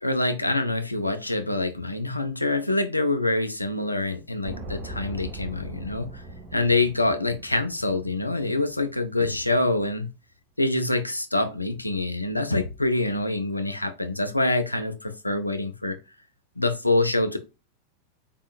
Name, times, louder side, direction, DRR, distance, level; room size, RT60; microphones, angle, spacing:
voice 1, 0.0-6.2 6.5-10.1 10.6-16.0 16.6-17.4, left 2 dB, 85° left, 0.6 m, -25 dB
sound 1, 4.4-8.7 9.0-9.1, right 2 dB, 30° right, 1.2 m, -40 dB
4.1 x 3.7 x 2.2 m
figure-of-eight pair, 90°, 0 cm